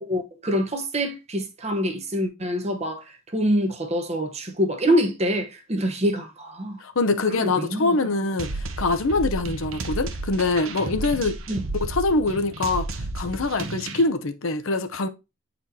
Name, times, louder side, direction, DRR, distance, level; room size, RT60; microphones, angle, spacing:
voice 1, 0.0-3.0 3.3-6.8 7.3-7.9 11.5-11.6, equal, 30° right, 0.9 m, -25 dB
voice 2, 6.8-11.3 11.8-12.9 13.1-15.1, left 3 dB, 65° left, 0.7 m, -24 dB
sound 1, 8.4-14.0, right 2 dB, 65° right, 0.9 m, -32 dB
8.9 x 4.2 x 2.7 m
head